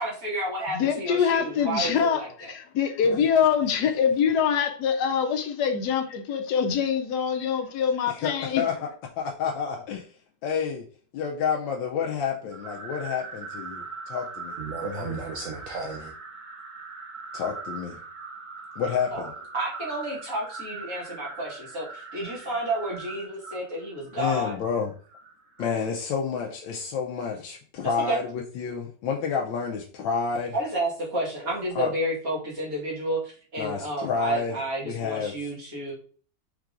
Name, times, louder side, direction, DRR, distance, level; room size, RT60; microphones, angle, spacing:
voice 1, 0.0-2.5 19.1-19.2 19.5-24.5 27.8-28.2 30.5-35.9, right 1 dB, 50° right, 2.1 m, -31 dB
voice 2, 0.7-2.2 2.5-8.6, left 7 dB, 65° left, 1.2 m, -24 dB
voice 3, 8.1-8.7 9.2-10.1 10.4-10.8 11.1-15.2 17.3-18.0 18.8-19.3 24.2-24.9 25.6-30.6 31.7-31.9 33.6-34.6 34.8-35.3, left 6 dB, 90° left, 1.3 m, -29 dB
sound 1, 12.5-25.9, right 4 dB, 35° right, 1.6 m, -41 dB
voice 4, 14.6-16.1, right 4 dB, 80° right, 0.7 m, -34 dB
4.7 x 3.7 x 2.5 m
omnidirectional pair, 2.0 m